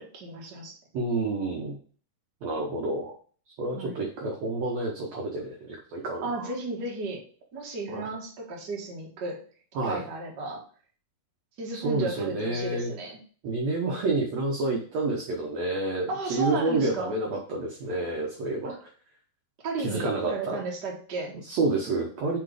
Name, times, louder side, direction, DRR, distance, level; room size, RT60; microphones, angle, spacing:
voice 1, 0.0-0.8 3.7-4.0 6.2-7.2 7.5-9.4 9.8-10.6 11.6-13.2 16.1-17.1 18.6-18.8 19.6-21.4, right 3 dB, 50° right, -1 dB, 1.3 m, -34 dB
voice 2, 0.9-1.8 2.4-3.1 3.6-6.5 7.9-8.1 9.8-10.1 11.7-12.9 13.4-18.7 19.8-20.6 21.4-22.4, right 2 dB, 70° right, 0 dB, 1.6 m, -29 dB
6.1 x 4.4 x 4.9 m, 0.43 s
omnidirectional pair, 4.3 m